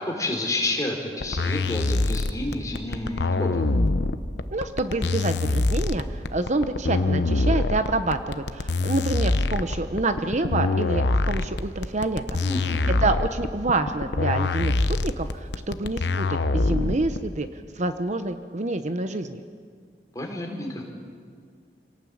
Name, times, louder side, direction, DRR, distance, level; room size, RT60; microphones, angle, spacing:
voice 1, 0.0-3.7 12.4-12.9 20.1-20.8, left 2 dB, 20° left, 1 dB, 4.2 m, -30 dB
sound 1, 1.2-17.2, left 2 dB, 80° left, 0.9 m, -24 dB
voice 2, 4.5-12.4 13.0-14.7 15.0-17.5 17.8-19.4, right 2 dB, 45° right, 9 dB, 0.9 m, -27 dB
26.0 x 18.0 x 8.7 m, 2.1 s
head